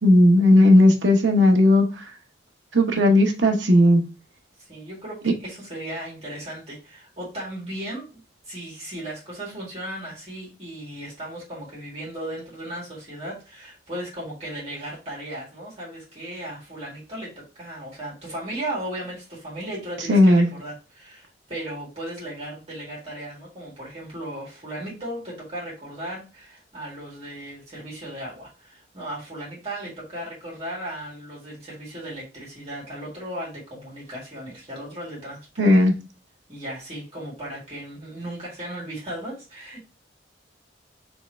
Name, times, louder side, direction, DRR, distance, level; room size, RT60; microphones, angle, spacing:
voice 1, 0.0-1.9 2.7-4.0 20.1-20.5 35.6-35.9, left 1 dB, 85° right, 4 dB, 0.9 m, -15 dB
voice 2, 4.6-8.1 8.4-35.7 36.5-39.8, right 1 dB, 35° right, -6 dB, 1.9 m, -36 dB
3.6 x 3.1 x 4.2 m, 0.32 s
head